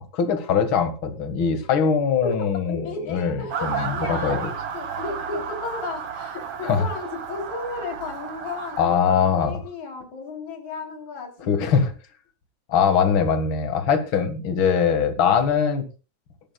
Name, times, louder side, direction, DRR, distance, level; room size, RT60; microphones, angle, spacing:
voice 1, 0.0-4.5 6.6-6.8 8.8-9.5 11.5-11.9 12.7-15.9, left 6 dB, 45° left, 7 dB, 2.3 m, -22 dB
voice 2, 2.7-11.3 11.6-11.9, left 3 dB, 65° left, 3 dB, 4.7 m, -34 dB
Motor vehicle (road) / Siren, 3.5-8.9, right 7 dB, 55° right, 2.4 m, -32 dB
22.0 x 11.5 x 2.4 m, 0.32 s
omnidirectional pair, 3.5 m